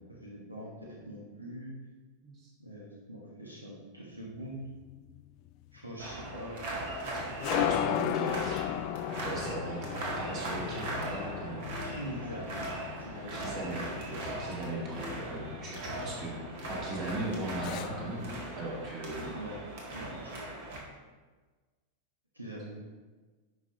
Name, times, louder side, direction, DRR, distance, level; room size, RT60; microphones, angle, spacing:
voice 1, 0.1-1.7 2.6-4.6 5.7-6.8 11.8-12.7 13.0-13.6 19.3-19.6 19.9-20.5 22.3-22.8, right 1 dB, 85° right, -3 dB, 1.2 m, -43 dB
sound 1, 4.4-18.5, left 11 dB, 40° left, 0.4 m, -37 dB
sound 2, 6.0-20.8, right 1 dB, 50° right, 1.7 m, -39 dB
voice 2, 7.5-11.7 13.3-16.4 16.7-18.3 18.6-19.3, right 2 dB, 35° right, -3 dB, 2.3 m, -38 dB
11.0 x 5.4 x 3.0 m, 1.3 s
figure-of-eight pair, 90°, 0 cm